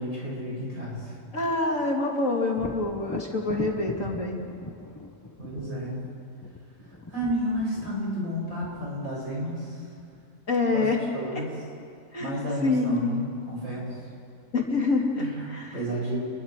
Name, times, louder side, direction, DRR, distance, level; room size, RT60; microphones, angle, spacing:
voice 1, 0.0-1.2 5.4-5.9 6.8-9.9 10.7-10.9 11.1-11.5 12.2-13.9 15.1-16.2, equal, 80° right, -5 dB, 8.4 m, -32 dB
voice 2, 1.3-4.4 10.5-11.0 11.3-11.4 12.1-12.3 12.6-13.3 14.5-15.7, left 3 dB, 65° left, 0 dB, 3.1 m, -26 dB
Thunder, 2.5-10.2 13.8-13.9 14.4-15.3, left 2 dB, 15° left, 0.9 m, -41 dB
30.0 x 22.5 x 4.9 m, 2.3 s
omnidirectional pair, 1.4 m